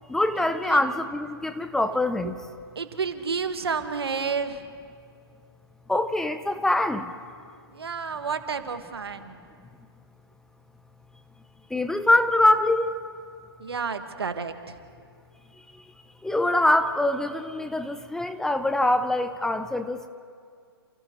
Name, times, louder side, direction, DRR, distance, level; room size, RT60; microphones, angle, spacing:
voice 1, 0.1-2.4 5.9-7.1 11.7-12.9 15.7-15.8 16.2-20.1, left 1 dB, 5° left, 9 dB, 0.6 m, -24 dB
voice 2, 2.7-4.6 7.7-9.4 13.6-14.8, right 5 dB, 75° right, 8 dB, 1.7 m, -30 dB
29.5 x 28.5 x 3.2 m, 2.2 s
figure-of-eight pair, 130°, 13 cm